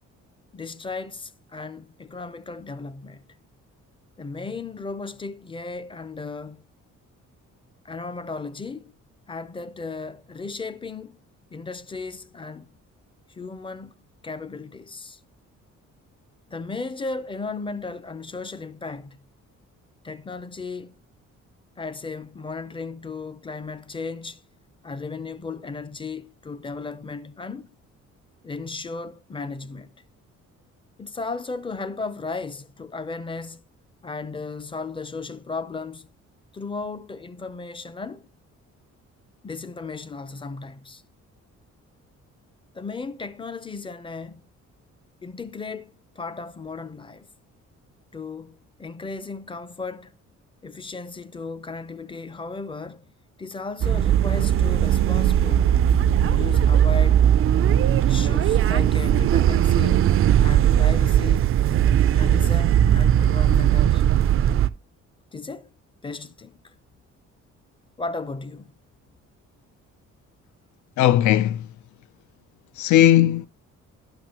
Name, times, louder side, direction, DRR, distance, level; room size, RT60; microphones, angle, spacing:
voice 1, 0.5-3.2 4.2-6.7 7.8-8.9 9.3-11.2 11.5-12.7 13.3-13.9 14.2-15.2 16.5-19.2 20.0-20.9 21.8-24.4 24.8-27.7 28.4-29.9 31.0-33.6 34.0-36.1 36.5-38.3 39.4-41.0 42.7-44.4 45.2-47.3 48.1-50.1 50.6-53.1 53.4-55.8 56.2-57.2 58.0-60.1 60.4-61.5 62.1-64.2 65.3-65.7 66.0-66.7 68.0-68.7, left 4 dB, 15° left, 0.5 m, -35 dB
sound 1, 53.8-64.7, right 10 dB, 45° right, 0.4 m, -19 dB
voice 2, 71.0-71.6 72.8-73.5, left 12 dB, 70° left, 0.5 m, -17 dB
10.5 x 6.0 x 2.9 m
cardioid pair, 90°, 30 cm